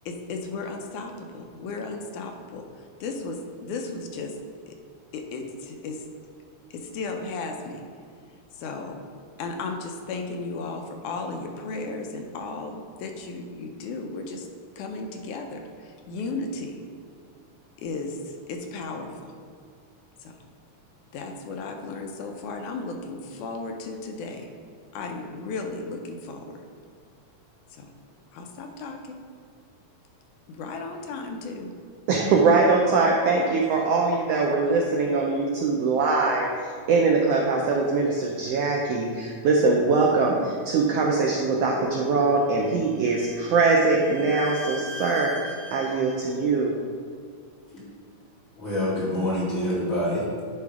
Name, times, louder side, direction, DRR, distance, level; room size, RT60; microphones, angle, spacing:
voice 1, 0.1-2.6 3.0-4.3 4.7-4.8 5.1-6.0 6.7-7.8 8.5-9.0 9.4-14.5 14.8-16.8 17.8-19.3 20.2-20.4 21.1-24.5 24.9-26.6 27.7-27.9 28.3-29.2 30.5-31.7, left 3 dB, 80° left, 3 dB, 2.1 m, -35 dB
voice 2, 32.1-36.5 36.9-45.3 45.7-46.8, right 3 dB, 90° right, 0 dB, 1.4 m, -22 dB
Bowed string instrument, 42.5-46.3, left 1 dB, 50° left, 1.0 m, -40 dB
voice 3, 48.6-50.5, left 1 dB, 30° left, -8 dB, 1.9 m, -26 dB
10.5 x 3.5 x 4.8 m, 2.2 s
omnidirectional pair, 3.6 m